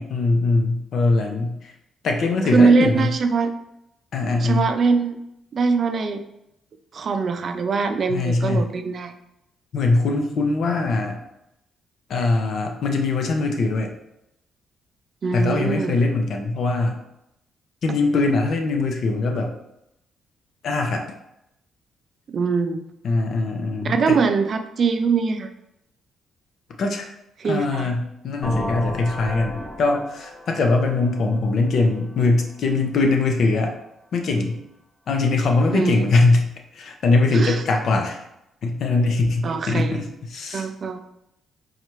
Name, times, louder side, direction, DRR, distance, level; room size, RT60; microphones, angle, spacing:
voice 1, 0.0-1.7 2.0-3.1 4.1-4.7 8.1-8.7 9.7-11.2 12.1-13.9 15.3-17.0 17.8-19.5 20.6-21.0 23.0-24.2 26.8-27.1 27.4-33.7 34.1-34.6 35.1-36.5 36.7-38.2 38.6-40.7, left 3 dB, 65° left, 3 dB, 0.6 m, -21 dB
voice 2, 2.5-3.5 4.4-5.2 5.5-6.2 6.9-9.1 15.2-16.0 22.3-22.8 23.8-25.5 27.4-27.9 35.7-36.0 37.3-37.6 39.4-40.0 40.5-41.0, right 4 dB, 50° right, 8 dB, 0.4 m, -22 dB
sound 1, 28.4-32.1, left 1 dB, 5° left, 1.0 m, -33 dB
4.2 x 2.4 x 3.0 m, 0.84 s
cardioid pair, 90°, 0 cm